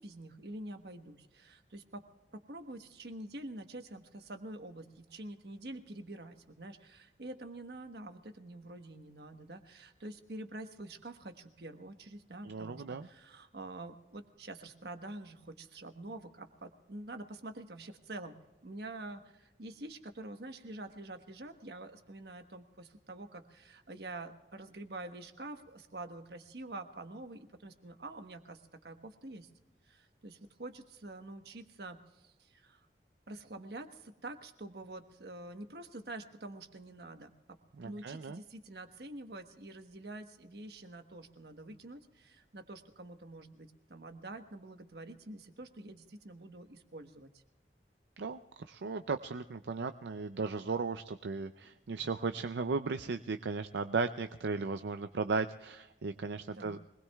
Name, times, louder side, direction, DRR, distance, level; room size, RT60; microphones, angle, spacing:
voice 1, 0.0-2.0 2.3-18.4 18.6-29.5 29.9-32.9 33.3-37.6 37.8-47.4 56.5-56.8, right 2 dB, 65° right, 6 dB, 1.2 m, -47 dB
voice 2, 12.4-13.1 37.8-38.4 48.2-48.4 48.7-56.8, right 4 dB, 85° right, 9 dB, 0.5 m, -36 dB
24.5 x 20.0 x 2.3 m, 1.0 s
head